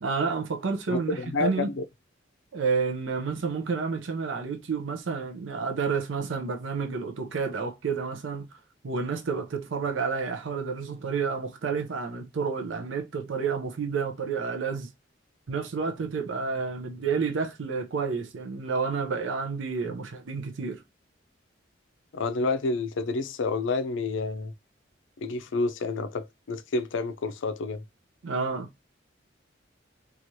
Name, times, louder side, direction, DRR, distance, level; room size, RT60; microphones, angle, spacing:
voice 1, 0.0-1.7 2.5-8.5 8.8-14.9 15.5-20.8 28.2-28.7, right 5 dB, 90° right, 0.5 m, -30 dB
voice 2, 0.9-1.8 22.1-24.5 25.2-27.8, left 3 dB, 80° left, 0.5 m, -29 dB
3.0 x 2.4 x 2.7 m
head